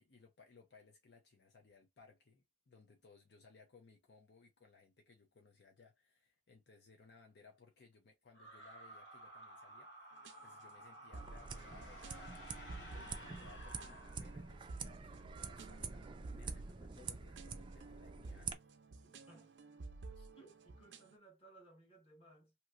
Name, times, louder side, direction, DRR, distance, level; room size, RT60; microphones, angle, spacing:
voice 1, 0.0-18.6, left 4 dB, 65° left, 0.6 m, -64 dB
sound 1, 8.3-14.8, right 1 dB, 80° left, 1.7 m, -54 dB
sound 2, 10.1-21.2, right 3 dB, 80° right, 0.5 m, -54 dB
sound 3, 11.1-18.6, right 5 dB, 25° right, 0.4 m, -47 dB
voice 2, 19.0-19.5 20.1-22.5, right 2 dB, 30° left, 1.2 m, -62 dB
3.0 x 2.8 x 2.4 m
head